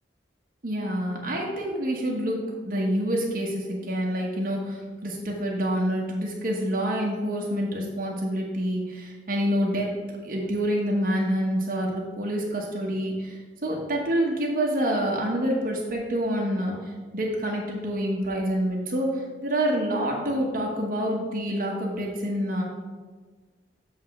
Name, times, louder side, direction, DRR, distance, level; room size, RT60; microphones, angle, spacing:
voice 1, 0.6-10.0 10.2-22.6, equal, 50° right, -2 dB, 1.0 m, -27 dB
7.7 x 3.5 x 6.3 m, 1.4 s
head